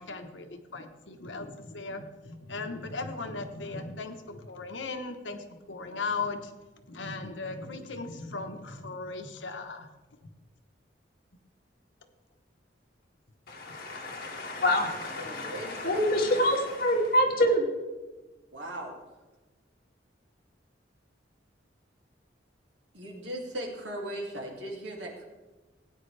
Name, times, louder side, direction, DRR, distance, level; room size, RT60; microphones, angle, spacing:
voice 1, 0.0-6.5 6.9-9.9 10.2-10.3, left 3 dB, 90° left, 6 dB, 1.1 m, -37 dB
voice 2, 13.5-17.7, equal, 55° left, -2 dB, 2.4 m, -26 dB
voice 3, 15.2-16.0 18.5-19.0 22.9-25.2, right 1 dB, 85° right, -1 dB, 2.5 m, -38 dB
17.5 x 9.4 x 3.3 m, 1.2 s
head